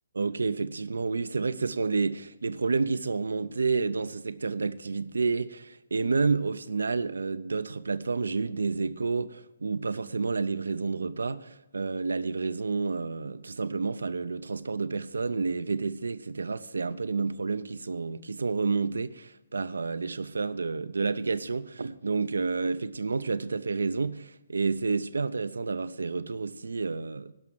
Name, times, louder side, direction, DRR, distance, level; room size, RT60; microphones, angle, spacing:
voice 1, 0.1-27.3, right 4 dB, 80° right, 0.6 m, -30 dB
12.0 x 5.8 x 9.0 m
figure-of-eight pair, 135°, 0 cm